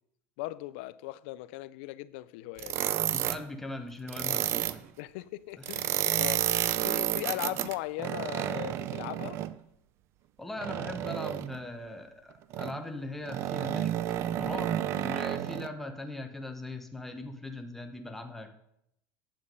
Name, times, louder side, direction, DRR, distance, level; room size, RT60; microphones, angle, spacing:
voice 1, 0.4-2.8 5.0-6.4 6.8-9.4, left 18 dB, 70° left, 0.4 m, -38 dB
sound 1, 2.6-3.4 4.1-4.8 5.6-9.5 10.6-11.6 12.5-12.8 13.3-15.7, right 12 dB, 45° right, 0.4 m, -31 dB
voice 2, 3.1-4.9 10.4-13.9 14.3-18.6, left 2 dB, 5° left, 1.0 m, -40 dB
8.7 x 7.2 x 5.3 m
supercardioid pair, 140°, 6 cm